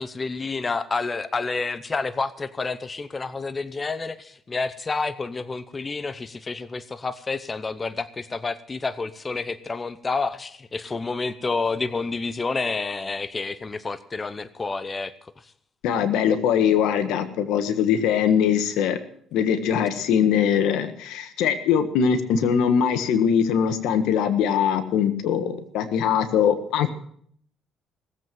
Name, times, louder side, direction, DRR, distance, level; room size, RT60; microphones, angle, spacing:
voice 1, 0.0-15.1 15.4-15.5, left 4 dB, 25° left, 14 dB, 0.7 m, -29 dB
voice 2, 15.8-19.0 19.3-26.9, left 8 dB, 85° left, 10 dB, 1.5 m, -22 dB
18.0 x 8.0 x 7.6 m, 0.63 s
cardioid pair, 95°, 0 cm